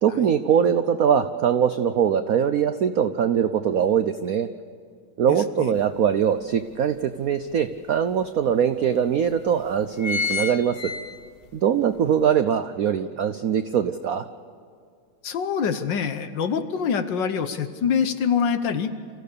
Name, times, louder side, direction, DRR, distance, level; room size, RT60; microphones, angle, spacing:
voice 1, 0.0-4.5 5.2-10.9 11.5-14.3, right 8 dB, 75° right, 10 dB, 0.8 m, -22 dB
voice 2, 5.3-5.7 15.2-18.9, left 6 dB, 60° left, 9 dB, 1.6 m, -25 dB
sound 1, 5.8-5.9 6.3-7.5 8.2-8.3 8.5-8.6 9.3-9.5 9.7-11.6 12.0-12.1, left 5 dB, 80° left, 0.5 m, -29 dB
27.5 x 15.5 x 6.8 m, 2.2 s
omnidirectional pair, 2.4 m